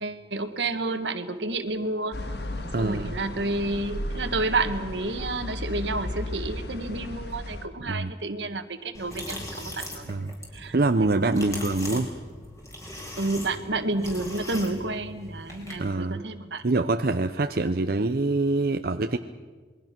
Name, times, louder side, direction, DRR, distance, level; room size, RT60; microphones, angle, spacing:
voice 1, 0.0-2.2 2.8-10.0 10.5-11.6 13.2-16.9, right 2 dB, 80° right, 9 dB, 1.6 m, -30 dB
sound 1, 2.1-7.7, left 1 dB, 65° left, 1.7 m, -34 dB
voice 2, 2.7-3.2 7.9-8.1 10.1-10.4 10.7-12.1 15.8-16.2 16.6-19.2, right 2 dB, 55° right, 7 dB, 0.7 m, -25 dB
sound 2, 8.9-15.9, left 1 dB, 15° left, 4.4 m, -39 dB
27.5 x 21.5 x 6.0 m, 1.5 s
head